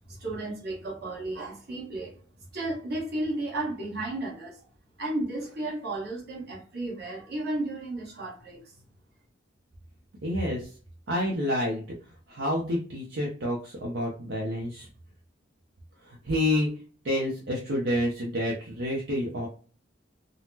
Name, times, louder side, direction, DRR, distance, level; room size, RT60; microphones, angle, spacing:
voice 1, 0.1-2.2 2.5-4.6 5.0-8.7, right 2 dB, 55° right, -3 dB, 1.2 m, -33 dB
voice 2, 10.2-10.7 11.1-11.8 12.3-14.9 16.1-16.7 17.0-19.5, left 1 dB, 70° right, -2 dB, 0.7 m, -28 dB
3.9 x 2.0 x 2.7 m, 0.40 s
head